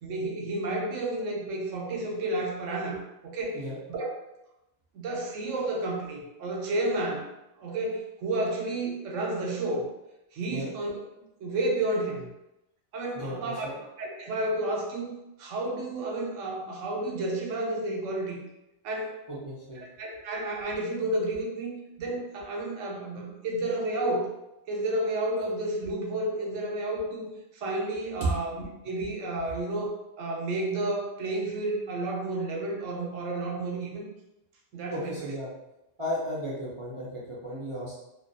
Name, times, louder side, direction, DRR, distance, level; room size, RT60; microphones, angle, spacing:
voice 1, 0.0-3.0 3.2-3.6 3.9-4.1 4.9-7.2 7.6-9.9 10.3-10.9 11.4-12.3 12.9-13.7 14.0-15.1 15.4-18.4 18.8-19.2 19.8-21.7 22.0-24.3 24.7-27.3 27.5-29.9 30.2-34.1 34.7-35.1, right 2 dB, 75° right, -1 dB, 0.9 m, -31 dB
voice 2, 13.1-13.8 19.3-19.8 28.2-28.3 34.9-35.5 36.0-38.0, right 1 dB, 40° right, -9 dB, 0.4 m, -34 dB
2.3 x 2.2 x 2.6 m, 0.91 s
omnidirectional pair, 1.3 m